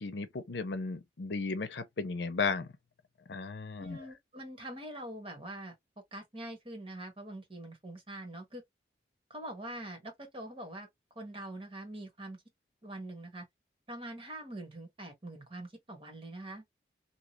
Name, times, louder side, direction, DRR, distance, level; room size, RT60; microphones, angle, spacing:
voice 1, 0.0-2.7 3.3-4.0, left 4 dB, 75° left, 0.6 m, -35 dB
voice 2, 3.8-5.7 6.1-8.6 9.3-10.9 11.1-12.4 12.8-13.5 13.9-16.6, right 1 dB, 30° right, 1.2 m, -44 dB
2.8 x 2.4 x 2.8 m
head